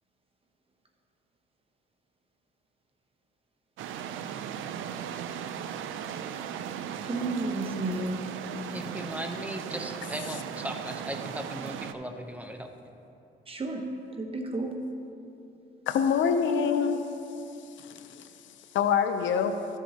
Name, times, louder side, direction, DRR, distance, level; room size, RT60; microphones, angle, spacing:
sound 1, 3.8-11.9, right 8 dB, 80° right, 0.5 m, -37 dB
voice 1, 7.0-8.2 13.5-14.8, right 2 dB, 30° right, 3 dB, 1.1 m, -32 dB
voice 2, 8.7-12.7, equal, 5° right, 5 dB, 0.7 m, -37 dB
voice 3, 15.9-17.0 17.8-18.3 18.7-19.6, left 7 dB, 75° left, 8 dB, 0.6 m, -25 dB
14.0 x 7.2 x 2.9 m, 2.8 s
cardioid pair, 90°, 20 cm